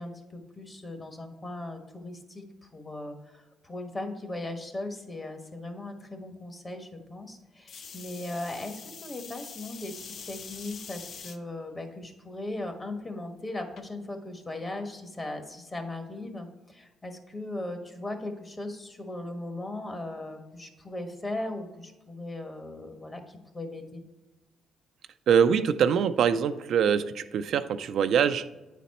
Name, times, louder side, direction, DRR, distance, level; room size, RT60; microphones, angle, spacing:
voice 1, 0.0-24.0, left 2 dB, 25° left, 5 dB, 1.2 m, -38 dB
sound 1, 7.7-11.4 12.0-12.5 13.8-13.9, left 6 dB, 60° left, 0.6 m, -44 dB
voice 2, 25.3-28.5, right 7 dB, 70° right, 10 dB, 0.3 m, -23 dB
9.1 x 4.1 x 4.2 m, 1.1 s
cardioid pair, 90°, 0 cm